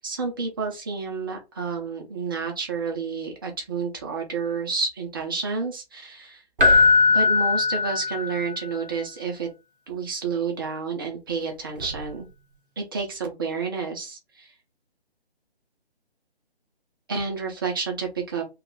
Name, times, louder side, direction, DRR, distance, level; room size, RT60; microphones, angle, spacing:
voice 1, 0.0-6.4 7.1-9.5 9.9-12.3 12.8-14.5 17.1-18.4, right 5 dB, 20° right, 1 dB, 0.6 m, -30 dB
Keyboard (musical), 6.6-8.6 11.8-12.0, left 4 dB, 55° right, 0.7 m, -19 dB
2.9 x 2.3 x 3.6 m, 0.25 s
figure-of-eight pair, 145°, 32 cm